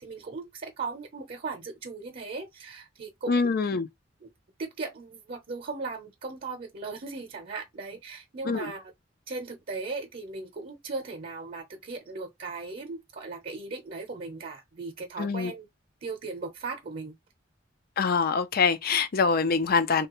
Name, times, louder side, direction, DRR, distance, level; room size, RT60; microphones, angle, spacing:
voice 1, 0.0-3.7 4.2-4.3 4.6-8.8 9.3-15.7 16.0-17.2, right 3 dB, 50° right, 0.7 m, -37 dB
voice 2, 3.3-3.9 8.4-8.7 15.2-15.5 18.0-20.1, left 5 dB, 50° left, 0.5 m, -24 dB
3.2 x 2.3 x 3.0 m
head